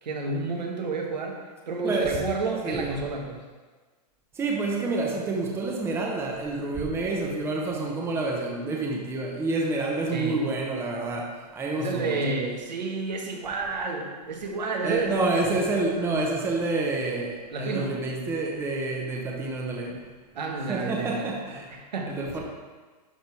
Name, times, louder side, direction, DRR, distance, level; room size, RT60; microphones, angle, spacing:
voice 1, 0.0-3.4 10.1-10.5 11.8-15.2 17.5-18.0 20.3-21.3 21.8-22.4, right 3 dB, 85° right, 1 dB, 1.5 m, -30 dB
voice 2, 1.8-2.2 2.6-2.9 4.3-12.2 14.8-20.0 20.6-21.7 22.1-22.4, right 3 dB, 10° right, -1 dB, 0.9 m, -28 dB
11.0 x 3.8 x 4.6 m, 1.4 s
hypercardioid pair, 150°, 21 cm